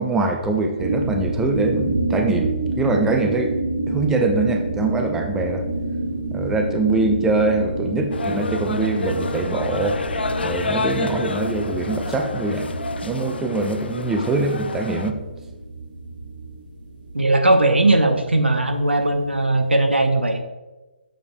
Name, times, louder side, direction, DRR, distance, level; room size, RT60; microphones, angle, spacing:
voice 1, 0.0-3.5 3.9-5.6 6.3-10.0 10.4-12.7 13.0-15.2, right 2 dB, 5° right, 3 dB, 0.5 m, -23 dB
sound 1, 0.8-19.7, right 2 dB, 55° right, 1.6 m, -28 dB
sound 2, 8.1-15.1, left 3 dB, 70° left, 0.5 m, -29 dB
voice 2, 17.1-20.4, right 2 dB, 90° right, 5 dB, 0.9 m, -18 dB
9.3 x 6.7 x 2.2 m, 1.2 s
figure-of-eight pair, 140°, 6 cm